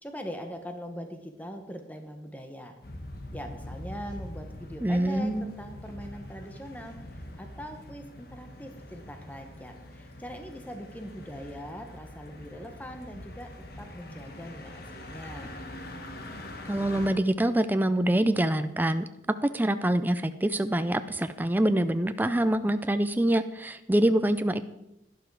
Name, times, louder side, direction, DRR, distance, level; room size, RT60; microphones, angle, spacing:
voice 1, 0.0-2.7 3.3-6.9 7.4-13.5 13.8-15.6, equal, 10° left, 5 dB, 1.0 m, -41 dB
sound 1, 2.8-17.1, left 1 dB, 50° left, 1.5 m, -43 dB
voice 2, 4.8-5.5 16.7-19.1 19.4-24.6, right 1 dB, 10° right, 10 dB, 0.4 m, -25 dB
11.5 x 11.0 x 4.7 m, 0.89 s
head